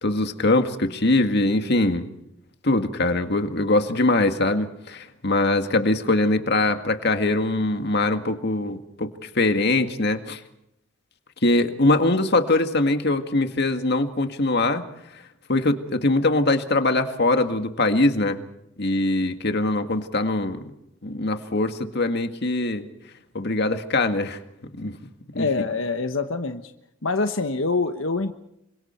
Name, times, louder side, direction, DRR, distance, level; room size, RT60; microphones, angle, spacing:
voice 1, 0.0-2.1 2.6-10.4 11.4-14.8 15.5-18.4 18.8-20.6 21.0-22.9 23.3-24.4 24.8-25.0 25.3-25.5, left 2 dB, 55° left, 7 dB, 1.9 m, -22 dB
voice 2, 25.4-26.6 27.0-28.3, left 3 dB, 80° left, 7 dB, 1.3 m, -25 dB
28.0 x 25.0 x 4.5 m, 0.82 s
head